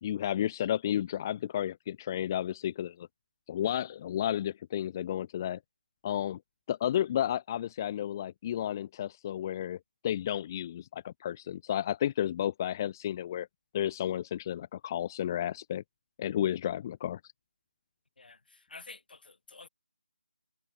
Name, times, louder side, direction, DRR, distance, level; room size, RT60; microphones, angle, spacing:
voice 1, 0.0-3.1 3.5-5.6 6.0-6.4 6.7-13.5 13.7-15.8 16.2-17.2, left 11 dB, 20° left, 0.5 m, -32 dB
voice 2, 18.7-19.7, left 3 dB, 70° left, 4.6 m, -49 dB
figure-of-eight pair, 165°, 5 cm